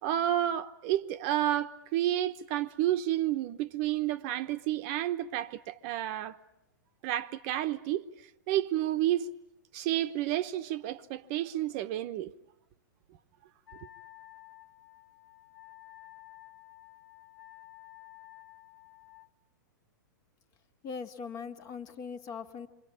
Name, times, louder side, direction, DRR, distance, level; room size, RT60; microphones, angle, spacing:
voice 1, 0.0-6.4 7.0-9.3 9.7-12.3, right 13 dB, 45° right, 1.0 m, -30 dB
Wind instrument woodwind instrument, 13.7-19.3, left 16 dB, 80° left, 2.2 m, -52 dB
voice 2, 20.8-22.7, left 5 dB, 35° left, 1.8 m, -40 dB
28.5 x 23.5 x 8.6 m
hypercardioid pair, 130°, 11 cm